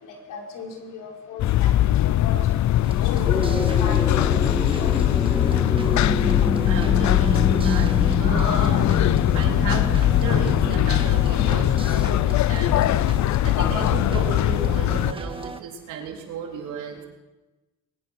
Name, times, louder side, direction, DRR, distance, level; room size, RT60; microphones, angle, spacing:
voice 1, 0.0-2.6 3.0-3.5 3.8-4.6, left 4 dB, 85° left, 0 dB, 5.5 m, -37 dB
sound 1, 1.4-15.1, left 14 dB, 65° left, 0.6 m, -21 dB
sound 2, 2.8-15.6, right 3 dB, 15° right, 1.7 m, -36 dB
sound 3, 3.3-11.8, left 1 dB, 10° left, 2.4 m, -28 dB
voice 2, 6.7-7.9 8.2-8.9 9.3-12.8 13.4-17.1, right 5 dB, 85° right, 1 dB, 3.7 m, -34 dB
21.5 x 20.5 x 6.3 m, 1.1 s
cardioid pair, 90°, 30 cm